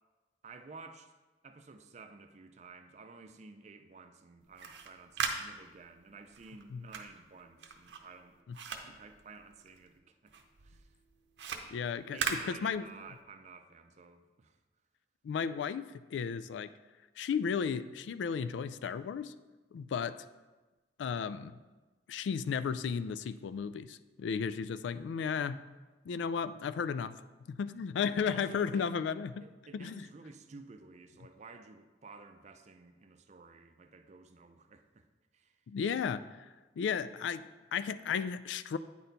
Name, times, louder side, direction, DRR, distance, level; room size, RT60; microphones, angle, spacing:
voice 1, 0.4-1.1 1.4-8.4 8.7-10.3 10.6-10.9 12.1-14.6 28.2-28.9 29.4-35.1 35.3-35.6, right 4 dB, 40° right, 8 dB, 0.4 m, -53 dB
sound 1, 4.4-10.0 10.3-13.2, right 5 dB, 80° right, 0.7 m, -40 dB
voice 2, 11.7-12.9 15.2-16.7 17.2-19.3 19.7-20.2 21.0-21.6 22.1-25.6 26.1-27.1 27.5-29.4 29.7-30.1 35.7-36.5 36.8-38.8, left 6 dB, 85° left, 13 dB, 0.3 m, -34 dB
9.0 x 4.3 x 3.9 m, 1.2 s
head